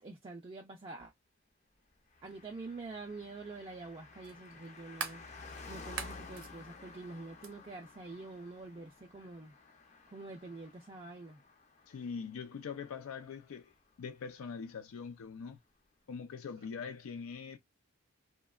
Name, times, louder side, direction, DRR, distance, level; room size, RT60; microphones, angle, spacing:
voice 1, 0.0-1.1 2.2-5.2 5.7-9.5 10.1-11.4, right 3 dB, 25° right, 0.4 m, -46 dB
Car passing by, 2.1-14.0 14.2-14.3, left 3 dB, 35° left, 0.5 m, -53 dB
sound 1, 2.3-2.4 4.2-5.3 5.8-6.5 7.4-7.5, right 6 dB, 60° right, 0.6 m, -41 dB
voice 2, 11.9-13.7 14.0-15.6 16.1-17.6, left 6 dB, 85° left, 0.4 m, -43 dB
2.8 x 2.1 x 2.3 m
head